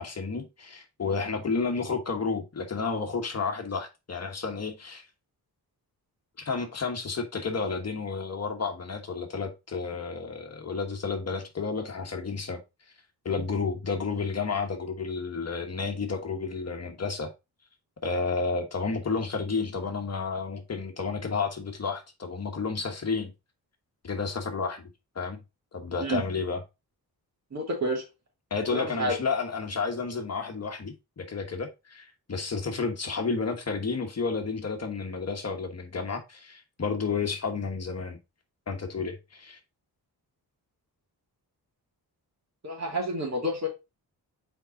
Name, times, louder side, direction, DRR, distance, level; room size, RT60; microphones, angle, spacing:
voice 1, 0.0-5.0 6.4-12.6 13.2-17.3 18.0-23.3 24.0-24.9 25.1-25.4 25.7-26.6 28.5-38.2 38.7-39.6, left 4 dB, 40° left, 1.3 m, -31 dB
voice 2, 27.5-28.0 28.7-29.2 42.6-43.7, equal, 45° right, 3.0 m, -29 dB
5.3 x 4.7 x 3.9 m
cardioid pair, 95°, 38 cm